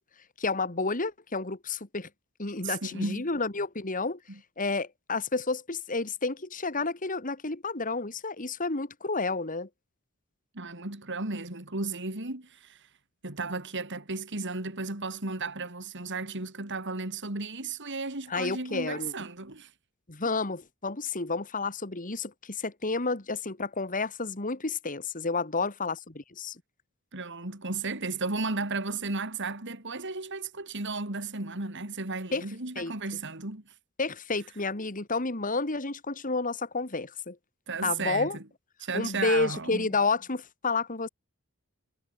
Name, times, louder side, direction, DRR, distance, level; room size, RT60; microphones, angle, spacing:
voice 1, 0.4-2.1 2.4-4.2 4.6-9.7 18.3-19.1 20.1-26.6 32.3-32.5 32.8-32.9 34.0-37.4 37.8-38.4 38.9-41.1, left 3 dB, 40° left, 2.1 m, -30 dB
voice 2, 2.6-3.3 10.5-12.9 13.2-19.7 27.1-33.6 37.7-38.3 38.8-39.8, right 3 dB, 55° right, 3.5 m, -34 dB
head